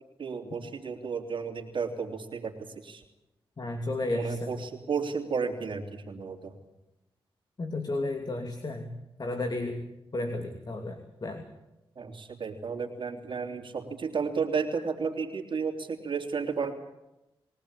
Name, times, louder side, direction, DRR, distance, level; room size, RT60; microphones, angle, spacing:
voice 1, 0.2-2.5 2.8-3.0 4.1-6.5 12.0-16.7, right 5 dB, 55° right, 3 dB, 3.2 m, -33 dB
voice 2, 3.6-4.5 7.6-8.9 9.2-9.8 10.1-11.4, left 2 dB, 45° left, 5 dB, 2.9 m, -32 dB
22.5 x 18.0 x 8.7 m, 0.92 s
cardioid pair, 60°, 10 cm